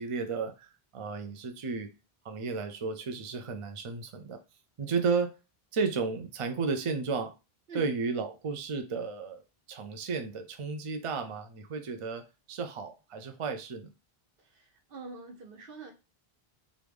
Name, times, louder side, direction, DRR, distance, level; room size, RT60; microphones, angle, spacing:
voice 1, 0.0-1.9 2.2-4.4 4.8-5.3 5.7-7.3 7.7-9.4 9.7-13.9, right 4 dB, 50° right, 0.4 m, -33 dB
voice 2, 14.4-15.9, right 4 dB, 65° right, 1.0 m, -44 dB
3.1 x 2.4 x 3.4 m
omnidirectional pair, 1.0 m